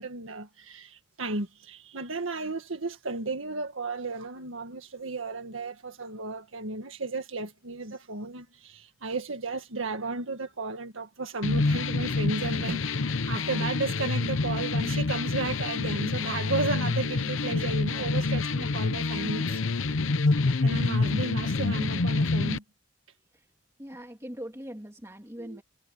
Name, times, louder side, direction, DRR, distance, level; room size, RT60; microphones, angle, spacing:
voice 1, 0.0-20.0 20.6-22.6 25.4-25.6, right 3 dB, 85° right, 1.8 m, -34 dB
sound 1, 11.4-22.6, left 3 dB, 85° left, 0.8 m, -27 dB
voice 2, 23.8-25.6, equal, 15° right, 2.5 m, -41 dB
head